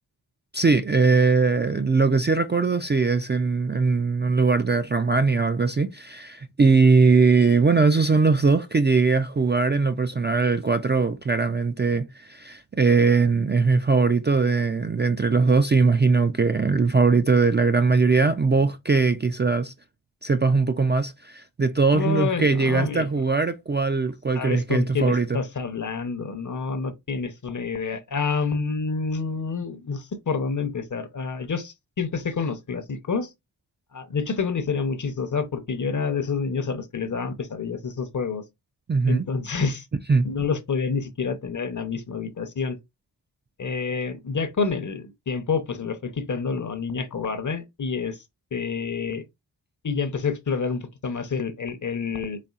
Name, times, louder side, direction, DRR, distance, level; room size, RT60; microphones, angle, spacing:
voice 1, 0.5-19.7 20.2-25.4 38.9-39.2 40.1-40.3, right 4 dB, 25° right, 0.3 m, -20 dB
voice 2, 21.9-23.1 24.3-33.3 33.9-38.4 39.1-39.9 40.2-42.8 43.6-48.2 48.5-49.2 49.8-52.4, left 5 dB, 45° left, 0.7 m, -28 dB
4.2 x 3.5 x 2.4 m
wide cardioid pair, 65°, 44 cm